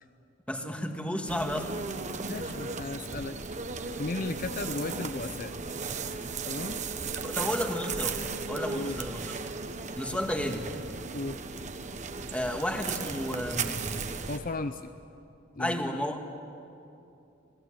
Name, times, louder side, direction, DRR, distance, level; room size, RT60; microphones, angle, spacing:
voice 1, 0.5-1.7 7.2-8.2 8.5-9.4 10.0-10.6 12.3-14.0 15.6-16.2, equal, 5° left, 4 dB, 1.7 m, -32 dB
sound 1, 1.3-14.4, right 4 dB, 40° right, 1.1 m, -36 dB
voice 2, 2.3-3.4 3.7-5.5 6.4-6.8 8.7-9.0 11.1-11.4 14.3-14.9 15.6-16.0, left 2 dB, 45° left, 10 dB, 0.6 m, -35 dB
28.0 x 19.0 x 9.0 m, 2.7 s
head